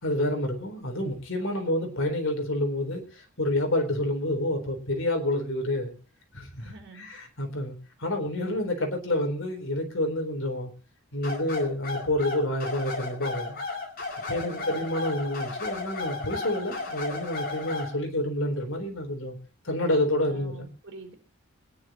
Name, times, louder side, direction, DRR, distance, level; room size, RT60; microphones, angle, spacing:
voice 1, 0.0-5.9 6.3-10.7 11.1-13.5 14.3-19.4 19.6-20.7, left 1 dB, 60° left, 3.9 m, -28 dB
voice 2, 1.4-1.7 6.6-7.1 14.3-14.9 20.3-21.1, right 3 dB, 55° right, 3.9 m, -47 dB
sound 1, 11.2-17.9, left 3 dB, 45° left, 4.8 m, -34 dB
25.5 x 10.5 x 3.0 m
head